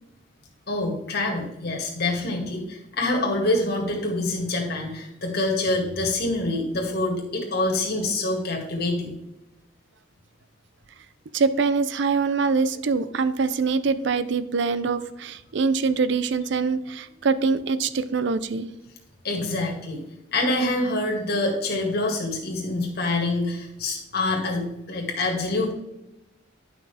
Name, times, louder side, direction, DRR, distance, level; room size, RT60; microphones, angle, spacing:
voice 1, 0.7-9.1 19.2-20.0 20.3-25.7, left 2 dB, 55° left, 0 dB, 2.2 m, -26 dB
voice 2, 11.3-18.7, right 4 dB, 65° right, 14 dB, 0.5 m, -24 dB
11.0 x 5.9 x 3.5 m, 0.90 s
head